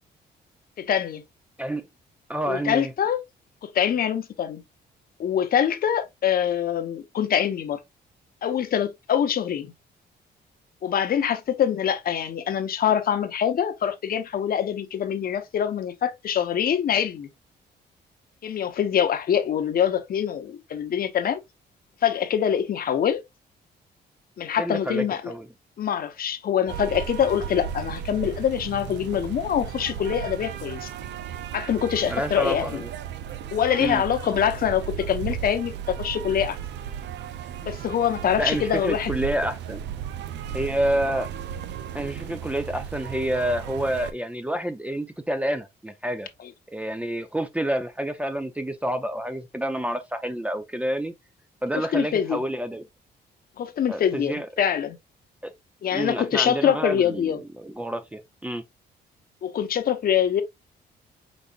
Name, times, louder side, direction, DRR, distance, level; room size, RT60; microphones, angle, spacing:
voice 1, 0.8-1.2 2.5-3.2 3.6-4.6 5.2-7.8 8.4-9.7 10.8-17.3 18.4-21.4 22.0-23.2 24.4-25.3 25.8-30.9 31.5-32.8 33.5-36.6 37.6-39.1 51.8-52.4 53.6-55.0 55.8-57.4 59.4-60.4, left 9 dB, 55° left, 0.9 m, -24 dB
voice 2, 2.3-2.9 24.6-25.5 32.1-32.9 33.8-34.0 38.4-39.8 40.5-41.3 41.9-46.3 46.7-51.1 51.6-52.9 53.9-54.5 55.4-55.5 55.9-58.6, right 1 dB, 5° right, 0.6 m, -28 dB
sound 1, 26.7-44.1, right 9 dB, 85° right, 0.6 m, -35 dB
5.3 x 4.0 x 2.3 m
cardioid pair, 115°, 18 cm